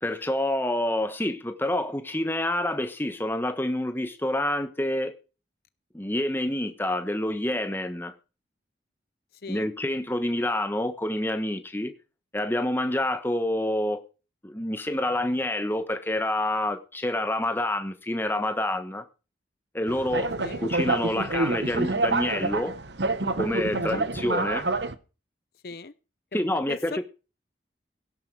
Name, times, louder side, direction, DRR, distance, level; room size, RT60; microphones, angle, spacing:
voice 1, 0.0-5.1 5.9-8.1 9.5-11.9 12.3-14.0 14.4-19.0 19.7-20.3 20.6-22.7 23.3-24.6 26.3-27.0, left 1 dB, 10° left, 1.2 m, -27 dB
sound 1, 19.9-24.9, right 2 dB, 75° right, 1.1 m, -27 dB
voice 2, 20.4-20.7 23.7-24.1 25.6-25.9 26.3-27.0, left 3 dB, 55° left, 0.7 m, -39 dB
16.5 x 11.5 x 4.8 m
head